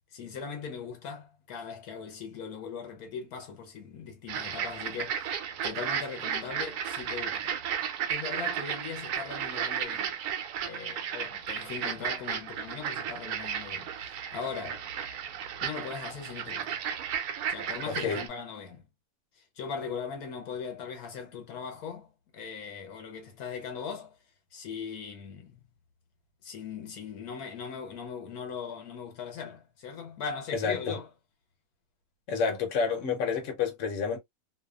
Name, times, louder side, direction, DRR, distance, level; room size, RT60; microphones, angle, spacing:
voice 1, 0.1-7.6 8.1-10.2 10.6-14.8 15.6-16.8 17.5-18.9 19.4-24.2 24.5-25.6 26.4-31.1, left 6 dB, 75° left, 1.3 m, -39 dB
sound 1, 4.3-18.3, right 8 dB, 80° right, 1.1 m, -34 dB
voice 2, 17.9-18.2 30.5-31.0 32.3-34.2, left 5 dB, 60° left, 1.1 m, -29 dB
2.7 x 2.3 x 2.2 m
omnidirectional pair, 1.6 m